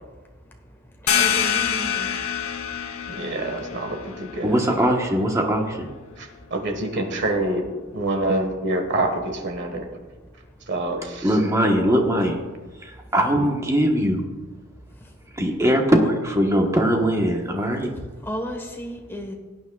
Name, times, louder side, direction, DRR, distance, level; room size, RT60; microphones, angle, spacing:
sound 1, 1.1-6.4, left 8 dB, 85° left, 0.9 m, -27 dB
voice 1, 1.1-2.1 18.3-19.3, equal, 10° left, 2 dB, 1.3 m, -33 dB
voice 2, 3.1-4.6 6.2-7.6 7.9-9.9 10.7-11.3, right 2 dB, 55° right, 4 dB, 1.5 m, -26 dB
voice 3, 4.4-5.9 11.2-12.4 12.8-14.3 15.3-17.9, equal, 15° right, 1 dB, 1.2 m, -21 dB
17.5 x 9.0 x 2.4 m, 1.3 s
head